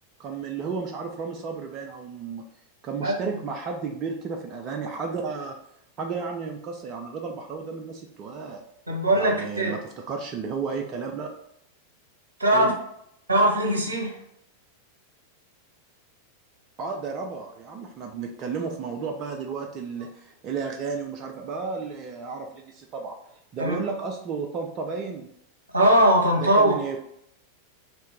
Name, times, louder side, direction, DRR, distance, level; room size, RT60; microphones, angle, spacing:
voice 1, 0.2-2.4 2.8-5.6 6.0-8.6 9.1-11.3 12.5-12.8 16.8-23.2 23.5-25.3 25.8-25.9 26.4-27.0, right 5 dB, 35° right, 2 dB, 0.4 m, -33 dB
voice 2, 8.9-9.7 12.4-12.7 13.3-14.2 23.6-23.8 25.7-26.7, right 1 dB, 80° right, -1 dB, 0.8 m, -20 dB
3.0 x 2.7 x 3.3 m, 0.73 s
figure-of-eight pair, 90°, 0 cm